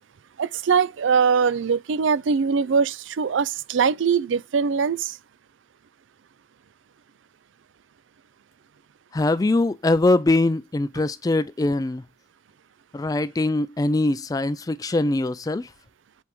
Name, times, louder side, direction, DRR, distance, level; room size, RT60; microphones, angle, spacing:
voice 1, 0.4-5.2, right 6 dB, 75° right, 0.4 m, -22 dB
voice 2, 9.1-12.0 12.9-15.7, left 2 dB, 20° left, 0.3 m, -22 dB
7.7 x 4.6 x 3.6 m
head